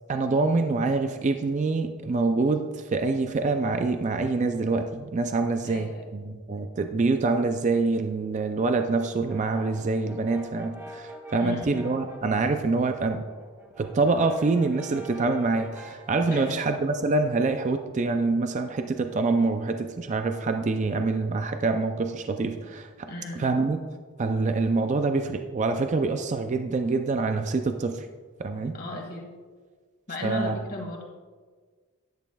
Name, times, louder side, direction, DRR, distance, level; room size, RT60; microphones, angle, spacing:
voice 1, 0.1-13.2 13.8-23.1 23.4-23.8 24.2-28.1 28.4-28.8 30.2-30.5, right 3 dB, 35° right, 6 dB, 0.4 m, -26 dB
voice 2, 5.6-6.1 11.4-11.8 16.3-16.7 23.1-23.6 28.7-29.3 30.1-31.0, left 1 dB, 45° left, 0 dB, 1.9 m, -36 dB
Brass instrument, 9.1-12.7 13.1-16.7, equal, 10° right, 1.0 m, -44 dB
10.5 x 10.5 x 2.3 m, 1.5 s
head